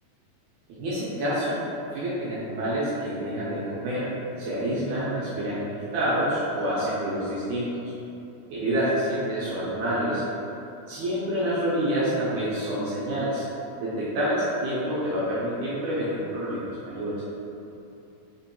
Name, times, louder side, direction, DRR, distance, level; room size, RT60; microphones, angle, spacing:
voice 1, 0.7-1.6 1.9-4.1 4.4-7.9 8.5-10.2 10.9-13.5 13.8-17.2, equal, 80° right, -9 dB, 1.8 m, -27 dB
5.1 x 2.7 x 2.2 m, 2.8 s
omnidirectional pair, 3.8 m